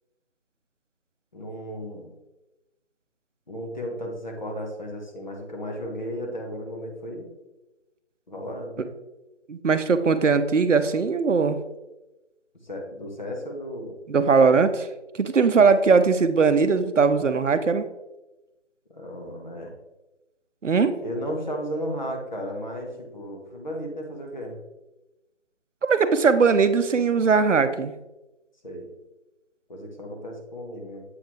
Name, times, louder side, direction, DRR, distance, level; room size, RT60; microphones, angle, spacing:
voice 1, 1.3-2.1 3.5-7.2 8.3-8.9 12.6-14.0 18.9-19.7 21.0-24.6 28.6-28.9 29.7-31.0, equal, 40° left, 0 dB, 1.1 m, -34 dB
voice 2, 9.5-11.6 14.1-14.9 15.2-17.8 20.6-21.0 25.8-27.9, right 5 dB, 85° right, 11 dB, 0.6 m, -20 dB
7.6 x 4.0 x 3.1 m, 1.0 s
figure-of-eight pair, 160°, 36 cm